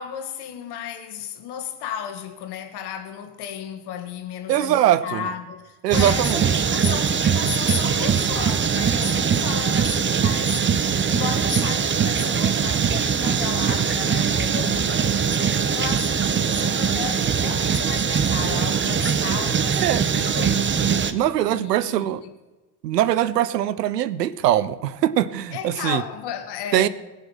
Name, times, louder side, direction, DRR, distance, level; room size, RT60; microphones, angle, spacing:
voice 1, 0.0-15.4 15.7-20.9 21.5-22.3 25.5-26.9, left 9 dB, 55° left, 1.9 m, -34 dB
voice 2, 4.5-5.3 5.8-6.5 19.8-20.1 21.1-22.2 22.8-26.0 26.7-26.9, right 12 dB, 75° right, 0.7 m, -22 dB
sound 1, 5.9-21.1, right 7 dB, 25° right, 0.9 m, -22 dB
20.0 x 7.1 x 5.7 m
figure-of-eight pair, 55°, 48 cm